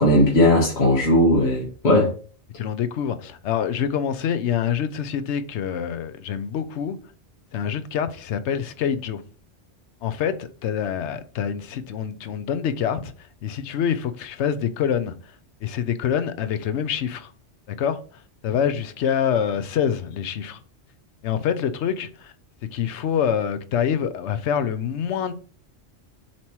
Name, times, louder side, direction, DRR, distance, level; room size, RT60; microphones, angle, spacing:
voice 1, 0.0-2.1, left 1 dB, 70° left, 1.6 m, -17 dB
voice 2, 2.6-7.0 7.5-9.2 10.0-15.1 15.6-17.3 17.8-18.0 18.4-20.6 21.2-22.3 22.7-25.3, left 8 dB, 85° left, 1.0 m, -26 dB
7.3 x 3.0 x 4.6 m
omnidirectional pair, 1.1 m